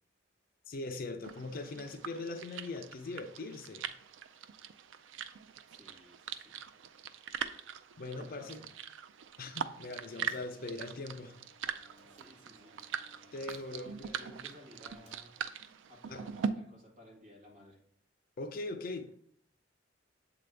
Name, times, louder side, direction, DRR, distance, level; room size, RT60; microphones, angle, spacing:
voice 1, 0.7-3.9 8.0-8.6 9.4-11.4 13.3-14.4 16.1-16.2 18.4-19.1, left 2 dB, 50° left, 7 dB, 0.5 m, -41 dB
sound 1, 1.2-16.5, right 7 dB, 80° right, 0.4 m, -42 dB
voice 2, 5.7-6.6 8.1-8.7 10.2-10.4 12.1-15.4 15.9-17.8, equal, 45° right, -1 dB, 1.8 m, -57 dB
sound 2, 9.4-15.1, equal, 60° right, 2.0 m, -63 dB
7.4 x 4.0 x 3.3 m, 0.65 s
head